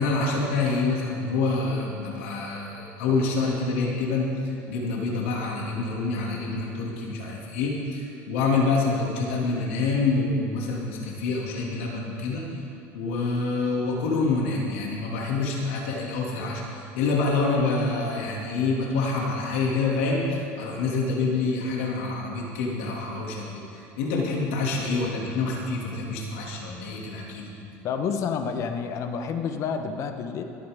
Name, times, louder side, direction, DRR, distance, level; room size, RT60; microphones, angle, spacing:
voice 1, 0.0-12.4 12.9-27.5, left 3 dB, 90° left, -2 dB, 2.4 m, -27 dB
voice 2, 27.8-30.4, left 6 dB, 50° left, 6 dB, 1.1 m, -29 dB
23.0 x 8.7 x 3.6 m, 2.6 s
supercardioid pair, 115°, 7 cm